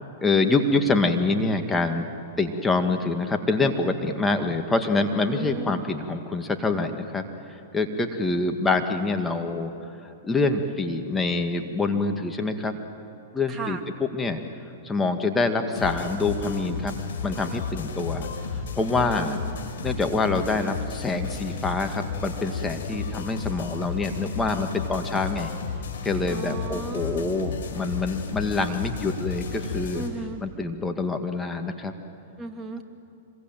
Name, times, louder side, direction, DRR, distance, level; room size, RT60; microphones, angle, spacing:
voice 1, 0.2-2.1 2.4-7.2 7.5-9.7 10.0-12.8 13.3-14.4 14.8-17.0 17.2-18.3 18.7-19.4 19.8-25.5 26.0-30.0 30.4-31.9, left 3 dB, 10° left, 5 dB, 2.0 m, -26 dB
voice 2, 5.2-5.8 13.5-13.8 19.0-19.5 26.3-27.3 29.9-30.4 32.4-32.8, right 2 dB, 15° right, 2 dB, 2.8 m, -36 dB
sound 1, 15.8-30.1, left 5 dB, 75° left, 4.7 m, -33 dB
26.0 x 22.5 x 9.2 m, 2.9 s
hypercardioid pair, 115°, 0 cm